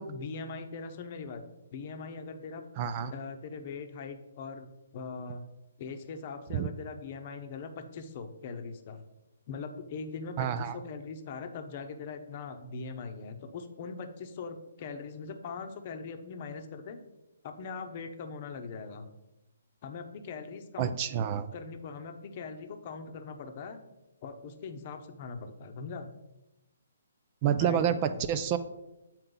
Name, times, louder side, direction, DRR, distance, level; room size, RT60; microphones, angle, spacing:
voice 1, 0.0-1.4 1.7-2.7 3.1-5.4 5.8-9.0 9.5-17.0 17.4-19.0 19.8-21.0 21.5-23.8 24.2-26.1 27.4-28.5, left 4 dB, 40° left, 6 dB, 0.8 m, -41 dB
voice 2, 2.8-3.1 6.5-6.7 10.4-10.8 20.8-21.5 27.4-28.6, right 9 dB, 35° right, 11 dB, 0.4 m, -28 dB
7.8 x 4.3 x 3.9 m, 0.96 s
figure-of-eight pair, 140°, 0 cm